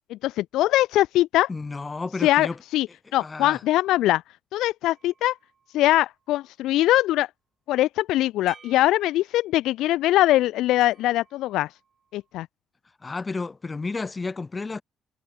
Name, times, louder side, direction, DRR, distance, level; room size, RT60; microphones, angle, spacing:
voice 1, 0.1-1.5 2.2-2.9 3.1-4.2 4.5-5.4 5.7-7.3 7.7-11.7 12.1-12.5, left 15 dB, 90° left, 0.3 m, -22 dB
voice 2, 1.5-2.6 3.2-3.6 13.0-14.8, left 3 dB, 25° left, 2.3 m, -31 dB
sound 1, 4.8-6.5 8.5-9.7 10.8-12.3, right 6 dB, 45° right, 6.7 m, -55 dB
cardioid pair, 90°, 0 cm